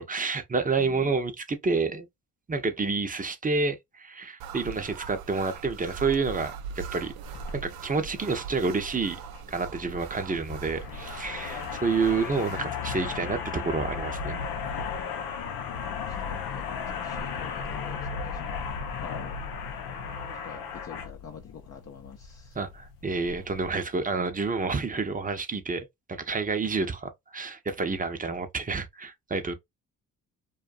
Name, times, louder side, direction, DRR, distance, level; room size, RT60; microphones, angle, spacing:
voice 1, 0.0-2.1 2.5-7.1 7.5-9.2 9.5-14.4 22.5-29.6, right 4 dB, 25° right, 0.8 m, -29 dB
voice 2, 0.8-1.1 15.5-18.7 19.0-19.4 20.4-22.6, left 7 dB, 45° left, 0.6 m, -46 dB
sound 1, 4.4-12.6, right 7 dB, 75° right, 0.5 m, -41 dB
sound 2, 7.2-23.8, left 6 dB, 90° left, 0.7 m, -36 dB
2.5 x 2.4 x 2.5 m
supercardioid pair, 60°, 35 cm